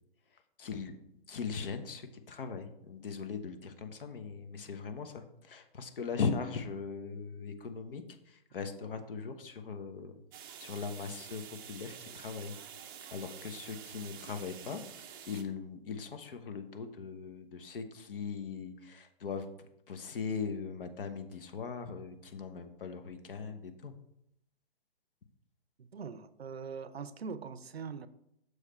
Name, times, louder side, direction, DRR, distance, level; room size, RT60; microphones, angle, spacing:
voice 1, 0.6-1.0 1.3-12.5 13.1-14.8 15.3-19.5 19.9-23.9, left 5 dB, 60° left, 8 dB, 1.0 m, -39 dB
sound 1, 10.3-15.4, right 9 dB, 25° right, 0.5 m, -48 dB
voice 2, 25.8-28.1, right 5 dB, 85° right, 14 dB, 0.6 m, -42 dB
6.5 x 4.9 x 4.2 m, 0.79 s
hypercardioid pair, 130°, 30 cm